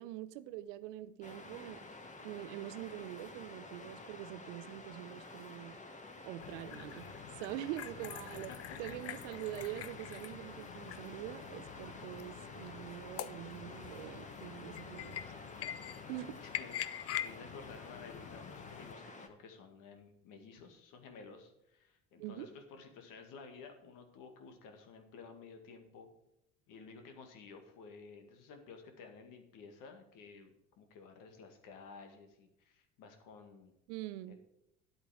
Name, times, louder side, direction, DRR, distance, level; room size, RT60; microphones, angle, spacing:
voice 1, 0.0-1.8 2.2-5.8 6.3-7.1 7.4-8.5 8.8-15.2 16.1-16.4 22.2-22.5 33.9-34.4, right 14 dB, 70° right, 0.7 m, -44 dB
Waves surf, 1.2-19.3, left 2 dB, 20° left, 1.4 m, -51 dB
sound 1, 6.4-18.9, left 11 dB, 40° left, 0.6 m, -45 dB
voice 2, 16.4-26.1 26.7-33.7 34.3-34.4, left 5 dB, 60° left, 2.0 m, -53 dB
10.0 x 8.5 x 4.9 m
hypercardioid pair, 65°, 37 cm